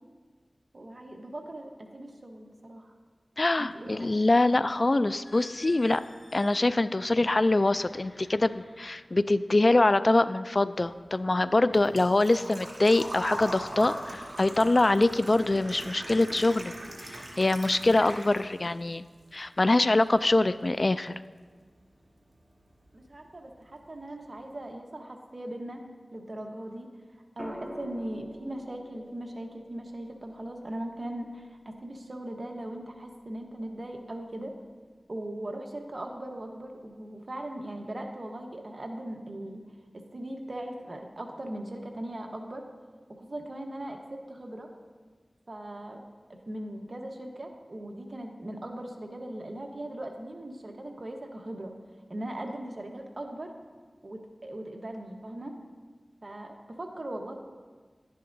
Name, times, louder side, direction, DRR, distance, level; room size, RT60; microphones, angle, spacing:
voice 1, 0.7-2.9 3.6-4.1 22.9-25.8 26.1-26.9 27.4-34.5 35.1-39.6 39.9-42.6 43.1-44.7 45.5-46.0 46.5-51.7 52.1-53.5 54.0-55.5 56.2-57.3, right 1 dB, 55° right, 2 dB, 1.1 m, -39 dB
voice 2, 3.4-6.0 6.3-16.7 17.0-19.0 19.3-21.1, left 2 dB, 50° left, 14 dB, 0.3 m, -24 dB
sound 1, 5.2-9.8 10.4-10.7 11.3-11.6, left 1 dB, 80° left, 1.9 m, -54 dB
Engine / Trickle dribble / Fill (with liquid), 10.8-18.7 19.0-20.0 20.3-20.4 22.3-22.4 22.6-22.9 23.3-23.4 23.7-23.8, right 1 dB, 85° right, 1.9 m, -40 dB
sound 2, 27.4-31.5 33.2-33.6, equal, 30° left, 1.3 m, -46 dB
11.0 x 10.5 x 2.6 m, 1.5 s
wide cardioid pair, 55°, 0 cm